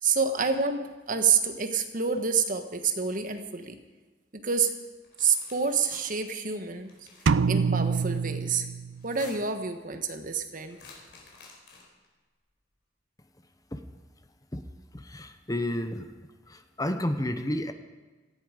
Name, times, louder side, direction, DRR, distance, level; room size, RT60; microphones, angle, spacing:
voice 1, 0.0-3.8 4.3-4.7 5.2-7.1 7.5-8.7 9.0-10.8, right 6 dB, 45° right, 7 dB, 1.3 m, -28 dB
sound 1, 5.0-6.0 6.8-7.4 8.9-9.6 10.7-12.0, left 4 dB, 65° left, 4.5 m, -50 dB
sound 2, 7.3-9.2, right 5 dB, 85° right, 0.4 m, -26 dB
voice 2, 14.9-16.1 16.5-17.7, left 1 dB, 20° left, 8 dB, 0.9 m, -31 dB
18.0 x 14.5 x 5.1 m, 1.3 s
head